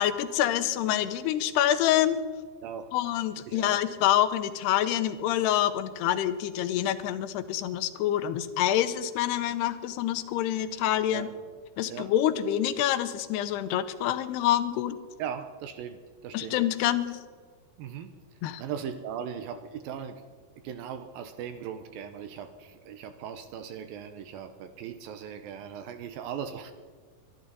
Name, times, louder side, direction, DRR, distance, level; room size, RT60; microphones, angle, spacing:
voice 1, 0.0-2.2 2.9-11.3 11.8-15.0 16.3-17.2 18.4-18.6, left 12 dB, 85° left, 11 dB, 2.8 m, -26 dB
voice 2, 3.5-3.8 11.1-11.4 11.9-12.1 15.2-16.6 17.8-18.2 18.6-20.2 20.6-26.7, right 8 dB, 75° right, 9 dB, 2.3 m, -38 dB
23.0 x 12.0 x 4.1 m, 1.5 s
omnidirectional pair, 4.6 m